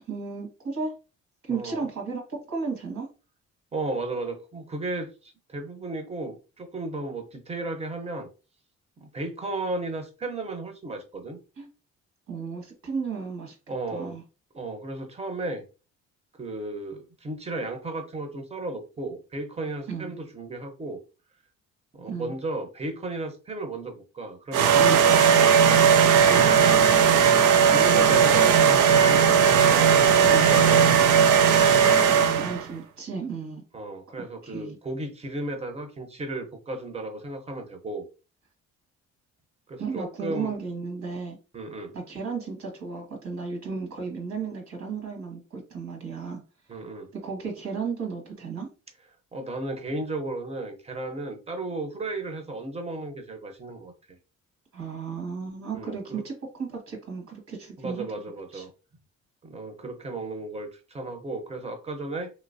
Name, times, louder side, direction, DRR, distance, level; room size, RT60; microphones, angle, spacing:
voice 1, 0.1-0.9 1.4-3.1 11.6-11.7 12.3-13.5 13.9-14.2 19.9-20.1 22.0-22.3 26.3-26.6 32.1-33.6 34.2-34.8 39.8-41.4 41.9-46.4 47.1-48.7 54.7-58.0 58.5-58.6, right 5 dB, 65° right, 1.7 m, -34 dB
voice 2, 1.5-1.8 3.7-8.3 9.0-11.4 13.7-14.2 14.5-15.6 16.4-21.0 21.9-25.5 27.0-31.3 33.7-38.1 39.7-40.5 41.5-41.9 46.7-47.1 49.3-54.2 55.7-56.2 57.8-58.7 59.4-62.3, right 2 dB, 20° right, 0.7 m, -34 dB
sound 1, 24.5-32.6, right 7 dB, 90° right, 0.5 m, -18 dB
3.1 x 2.9 x 2.6 m
cardioid pair, 90°, 30 cm